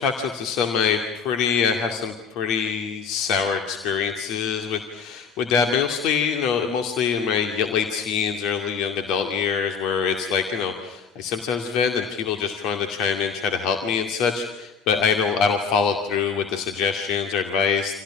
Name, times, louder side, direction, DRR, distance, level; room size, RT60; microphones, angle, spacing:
voice 1, 0.0-18.0, left 6 dB, 60° left, 6 dB, 2.3 m, -24 dB
29.5 x 27.0 x 6.2 m, 0.93 s
figure-of-eight pair, 55°, 0 cm